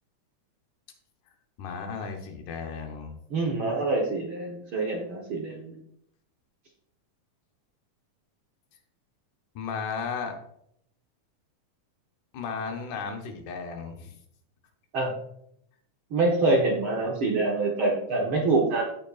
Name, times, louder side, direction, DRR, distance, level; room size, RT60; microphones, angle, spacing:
voice 1, 1.6-3.1 9.6-10.4 12.3-14.1, left 5 dB, 75° left, 4 dB, 2.4 m, -34 dB
voice 2, 3.3-5.7 14.9-15.1 16.1-18.8, right 3 dB, 60° right, -2 dB, 1.4 m, -25 dB
15.0 x 5.1 x 2.4 m, 0.73 s
omnidirectional pair, 3.6 m